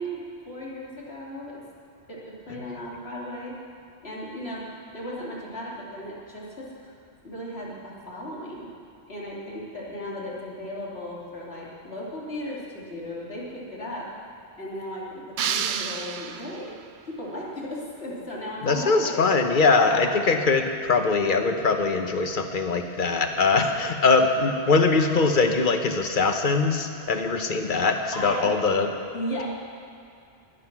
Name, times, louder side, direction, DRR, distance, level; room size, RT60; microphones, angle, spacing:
voice 1, 0.0-1.6 2.1-2.2 2.5-3.6 4.0-4.7 4.9-6.7 7.2-8.7 9.1-14.1 14.6-16.7 17.1-19.2 19.8-20.0 28.1-28.5 29.1-29.4, equal, 70° left, -5 dB, 2.9 m, -35 dB
sound 1, 15.4-16.9, right 7 dB, 55° right, 0.6 m, -30 dB
voice 2, 18.6-28.9, left 4 dB, 50° left, 5 dB, 1.1 m, -22 dB
20.5 x 7.8 x 6.0 m, 2.4 s
omnidirectional pair, 1.1 m